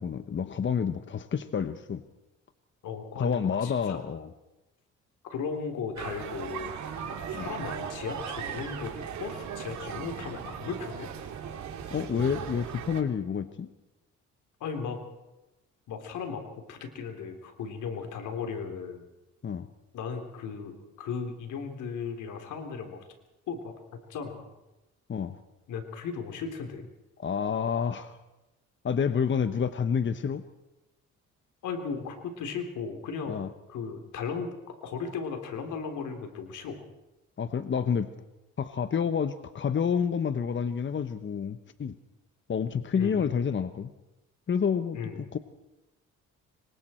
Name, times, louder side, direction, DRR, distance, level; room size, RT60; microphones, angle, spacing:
voice 1, 0.0-2.0 3.2-4.3 7.3-7.5 11.9-13.7 19.4-19.7 25.1-25.4 27.2-28.2 28.8-30.4 33.3-33.5 37.4-38.1 38.6-41.9 42.5-43.9 44.5-45.4, left 7 dB, 40° left, 11 dB, 1.1 m, -29 dB
voice 2, 2.8-4.0 5.2-6.7 7.0-8.9 9.2-11.1 14.6-15.0 15.9-19.0 19.9-23.0 23.5-23.7 24.1-24.5 25.7-26.9 31.6-33.4 33.7-36.8 42.9-43.3 44.9-45.2, left 5 dB, 80° left, 5 dB, 3.7 m, -36 dB
sound 1, 6.0-13.0, right 7 dB, 70° right, 2.8 m, -38 dB
26.5 x 23.5 x 4.5 m, 1.0 s
cardioid pair, 90°, 30 cm